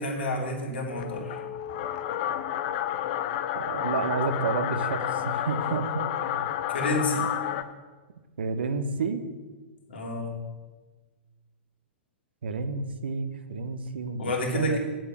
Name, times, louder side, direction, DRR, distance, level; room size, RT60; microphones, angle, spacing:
voice 1, 0.0-1.4 6.7-7.2 9.9-10.4 14.2-14.8, left 1 dB, 65° left, 0 dB, 3.1 m, -29 dB
sound 1, 0.9-7.6, left 11 dB, 45° left, 0.8 m, -30 dB
voice 2, 3.5-6.6 8.4-9.2 12.4-14.8, right 4 dB, 65° right, 10 dB, 1.1 m, -31 dB
9.1 x 7.6 x 8.8 m, 1.3 s
figure-of-eight pair, 105°, 6 cm